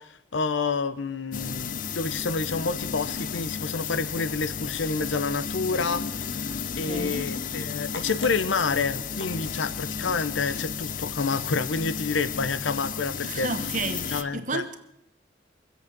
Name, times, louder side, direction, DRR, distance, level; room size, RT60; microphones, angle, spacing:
voice 1, 0.0-6.5 6.8-13.5 14.1-14.6, left 4 dB, 90° left, 0.7 m, -29 dB
sound 1, 1.3-14.2, left 7 dB, 45° left, 0.5 m, -33 dB
sound 2, 3.3-11.5, left 2 dB, 70° left, 2.3 m, -47 dB
voice 2, 6.8-7.3 9.6-10.1 13.2-14.8, right 3 dB, 45° right, 1.2 m, -33 dB
23.5 x 8.2 x 6.0 m
head